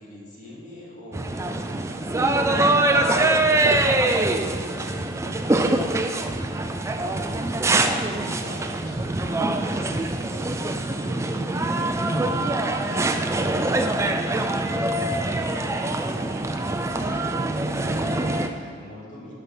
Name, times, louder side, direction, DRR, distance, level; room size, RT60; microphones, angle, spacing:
voice 1, 0.0-19.3, left 1 dB, 40° left, -5 dB, 2.4 m, -44 dB
sound 1, 1.1-18.5, right 2 dB, 15° right, 0.3 m, -24 dB
11.0 x 5.5 x 5.9 m, 2.2 s
head